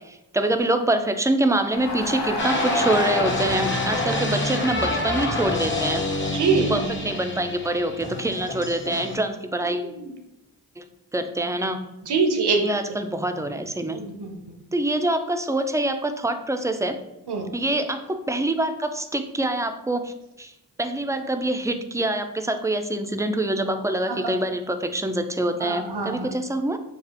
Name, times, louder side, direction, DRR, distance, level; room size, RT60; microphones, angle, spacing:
voice 1, 0.1-6.2 6.6-9.9 10.8-10.9 11.1-11.8 12.6-14.0 14.7-17.0 17.5-20.5 20.8-26.8, right 1 dB, 10° right, 8 dB, 0.4 m, -25 dB
Crowd, 1.7-6.9, left 2 dB, 85° left, 1.3 m, -33 dB
sound 1, 2.4-9.2, left 1 dB, 30° left, 0.9 m, -27 dB
voice 2, 6.3-6.7 9.6-10.1 12.0-12.7 13.9-14.4 17.3-17.5 21.8-21.9 24.1-24.2 25.6-26.3, right 5 dB, 75° right, 3 dB, 0.8 m, -25 dB
6.8 x 2.4 x 2.9 m, 0.92 s
cardioid pair, 50°, 40 cm